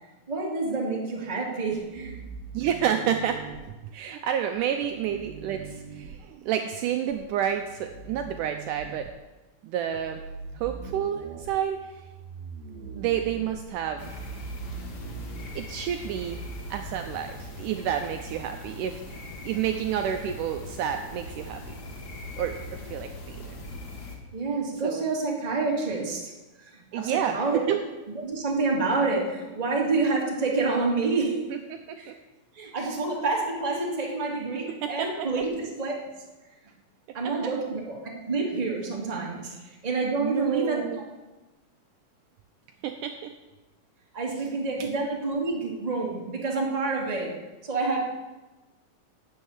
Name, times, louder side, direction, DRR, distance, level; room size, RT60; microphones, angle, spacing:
voice 1, 0.3-2.2 15.2-15.4 24.3-26.3 26.6-27.6 28.1-31.4 32.0-32.1 32.5-35.9 37.1-39.5 39.8-40.9 44.1-47.3 47.6-48.0, right 3 dB, 15° right, -2 dB, 1.5 m, -28 dB
sound 1, 1.7-3.6 4.5-6.2 7.1-9.1 9.9-17.1, right 5 dB, 65° right, 2.0 m, -42 dB
voice 2, 2.5-3.4 3.7-9.1 9.6-10.2 10.5-11.8 13.0-14.2 15.6-16.4 16.7-21.8 22.4-23.6 24.8-25.0 26.9-27.8 31.5-32.2 32.8-33.0 34.7-35.3 37.1-37.3 39.7-39.8 40.2-41.0 42.8-43.3 44.8-44.9, right 9 dB, 80° right, 6 dB, 1.9 m, -30 dB
sound 2, 14.0-24.2, left 1 dB, 60° left, 1.0 m, -41 dB
12.0 x 6.4 x 8.9 m, 1.1 s
omnidirectional pair, 4.1 m